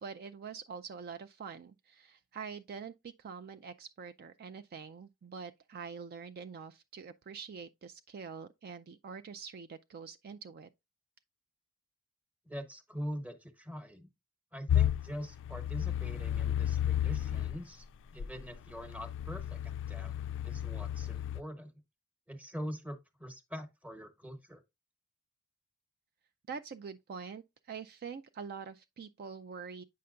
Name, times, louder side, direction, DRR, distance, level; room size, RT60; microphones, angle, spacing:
voice 1, 0.0-10.7 26.5-29.8, right 6 dB, 45° right, 0.4 m, -45 dB
voice 2, 12.5-14.1 14.5-17.8 18.1-20.2 20.4-21.7 22.3-24.6, equal, 5° right, 1.0 m, -43 dB
sound 1, 14.7-17.6 18.2-21.4, left 10 dB, 55° left, 0.3 m, -32 dB
8.5 x 5.6 x 2.4 m
head